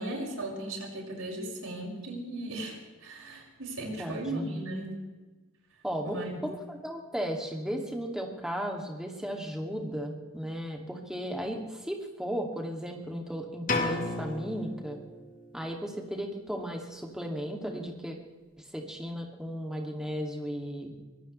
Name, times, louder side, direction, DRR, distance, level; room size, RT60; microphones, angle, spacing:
voice 1, 0.0-4.9 6.0-6.3, right 1 dB, 75° right, -1 dB, 5.8 m, -37 dB
voice 2, 4.0-4.6 5.8-15.0 15.5-18.2 18.6-21.0, equal, 5° right, 1 dB, 2.4 m, -35 dB
sound 1, 13.7-15.6, left 2 dB, 35° left, 2.0 m, -33 dB
24.0 x 18.0 x 3.3 m, 1.2 s
head